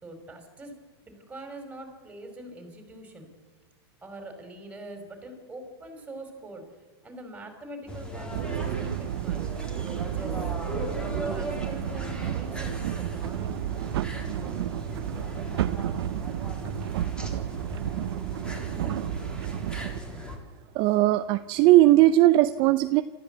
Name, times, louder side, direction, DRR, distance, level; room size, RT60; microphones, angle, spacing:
voice 1, 0.0-3.3 4.0-6.6 7.0-9.4 9.8-13.7, right 1 dB, 10° right, 4 dB, 5.3 m, -43 dB
sound 1, 7.9-20.4, equal, 5° left, 3.8 m, -37 dB
sound 2, 8.3-20.0, right 13 dB, 70° right, 0.8 m, -32 dB
voice 2, 20.7-23.0, right 15 dB, 40° right, 11 dB, 0.6 m, -18 dB
27.5 x 14.5 x 8.1 m, 1.3 s
supercardioid pair, 140°, 14 cm